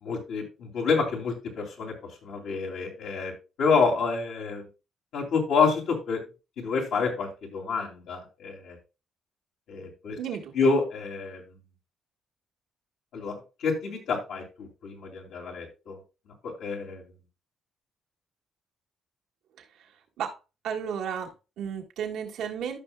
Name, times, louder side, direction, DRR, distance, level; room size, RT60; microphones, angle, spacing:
voice 1, 0.0-2.0 2.2-3.3 3.6-4.7 5.1-6.2 6.6-8.8 9.7-10.2 10.5-11.4 13.1-16.0 16.4-17.0, left 4 dB, 80° left, 2.7 m, -28 dB
voice 2, 10.2-10.5 19.6-19.9 20.2-20.4 20.6-22.8, right 8 dB, 85° right, 1.6 m, -33 dB
13.5 x 5.7 x 2.2 m
cardioid pair, 90°, 0 cm